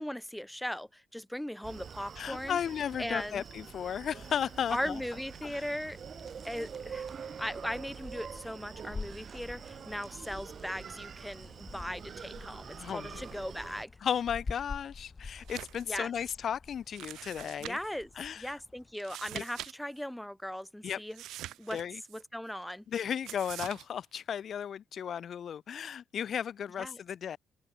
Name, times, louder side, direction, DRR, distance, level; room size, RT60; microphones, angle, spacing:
voice 1, 0.0-2.6 3.0-3.4 4.7-6.0 6.4-7.1 7.4-13.9 15.9-16.1 17.6-18.1 18.4-21.2 21.6-21.8 22.1-22.8 26.8-27.0, equal, 5° left, 1.5 m, -38 dB
Screaming, 1.6-13.9, right 7 dB, 50° right, 0.8 m, -46 dB
voice 2, 2.2-5.0 5.4-5.6 12.8-13.2 14.0-17.8 18.2-18.6 19.3-19.4 20.8-21.0 21.7-22.0 22.9-27.4, left 8 dB, 60° left, 0.7 m, -35 dB
sound 1, 4.1-18.9, left 4 dB, 30° left, 2.0 m, -48 dB
sound 2, 15.4-15.9 16.2-16.3 16.9-18.0 18.9-19.7 20.0-20.1 21.1-22.2 23.2-23.8, right 14 dB, 85° right, 1.2 m, -44 dB
open air
cardioid pair, 90°, 0 cm